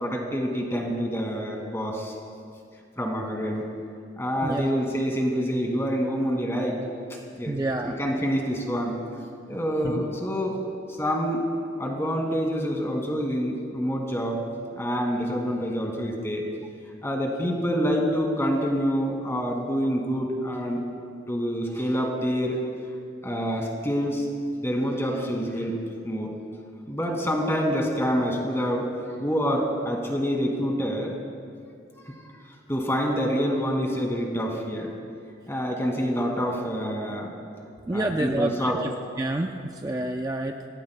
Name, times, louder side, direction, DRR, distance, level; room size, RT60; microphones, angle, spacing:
voice 1, 0.0-2.1 3.0-3.6 4.2-6.8 7.4-7.6 7.8-9.0 9.5-10.6 10.9-11.5 11.8-14.4 14.7-16.4 17.0-20.8 21.3-22.6 23.2-24.3 24.6-26.3 26.9-28.9 29.2-31.2 32.0-32.2 32.7-34.9 35.5-37.3 37.9-38.8, equal, 15° left, 0 dB, 2.1 m, -27 dB
voice 2, 7.5-8.0 9.8-10.1 37.9-38.9 39.2-40.7, right 1 dB, 20° right, 3 dB, 0.5 m, -28 dB
26.5 x 17.0 x 2.2 m, 2.3 s
head